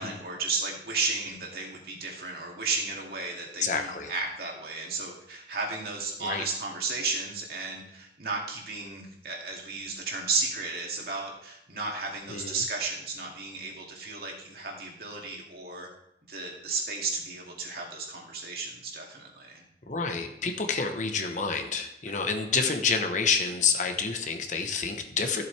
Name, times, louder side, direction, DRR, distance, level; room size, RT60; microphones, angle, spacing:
voice 1, 0.0-15.9 16.3-19.6, right 3 dB, 55° right, 0 dB, 2.3 m, -33 dB
voice 2, 3.6-4.1 6.2-6.4 12.3-12.6 19.9-25.4, left 5 dB, 45° left, 5 dB, 1.0 m, -28 dB
14.0 x 7.6 x 3.4 m, 0.76 s
head